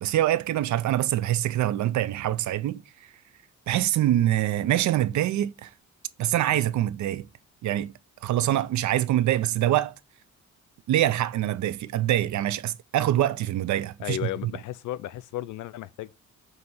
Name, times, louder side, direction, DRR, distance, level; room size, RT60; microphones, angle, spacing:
voice 1, 0.0-3.1 3.7-5.7 6.2-7.3 7.6-7.9 8.2-9.9 10.9-14.5, right 13 dB, 70° right, 0.6 m, -25 dB
voice 2, 14.0-16.2, left 13 dB, 80° left, 0.6 m, -34 dB
7.8 x 2.8 x 5.4 m
cardioid pair, 90°, 30 cm